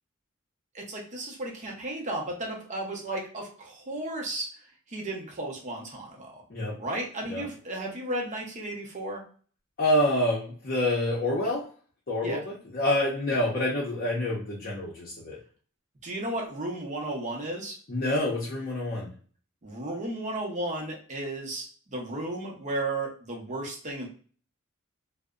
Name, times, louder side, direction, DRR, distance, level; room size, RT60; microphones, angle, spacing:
voice 1, 0.7-4.5 4.9-6.4 6.8-9.2 12.2-12.4 16.0-17.8 19.6-24.1, right 1 dB, 35° right, 0 dB, 0.6 m, -34 dB
voice 2, 9.8-11.6 12.1-15.4 17.9-19.1, left 1 dB, 45° left, -5 dB, 0.6 m, -27 dB
2.6 x 2.0 x 2.3 m, 0.43 s
head